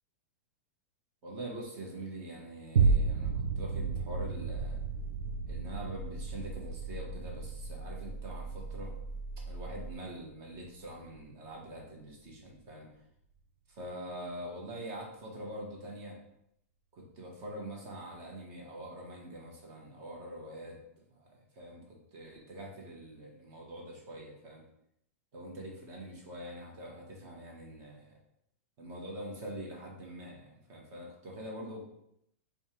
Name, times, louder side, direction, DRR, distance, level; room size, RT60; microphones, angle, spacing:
voice 1, 1.2-4.8 5.5-8.9 9.4-12.9 13.7-16.2 16.9-20.8 21.2-24.6 25.3-28.2 28.8-31.8, right 1 dB, 40° right, -1 dB, 1.2 m, -44 dB
sound 1, 2.8-11.3 11.8-11.9, right 5 dB, 80° right, 0.4 m, -33 dB
sound 2, 4.5-9.9, right 2 dB, 10° right, 0.8 m, -42 dB
3.4 x 2.4 x 4.3 m, 0.77 s
hypercardioid pair, 140°, 8 cm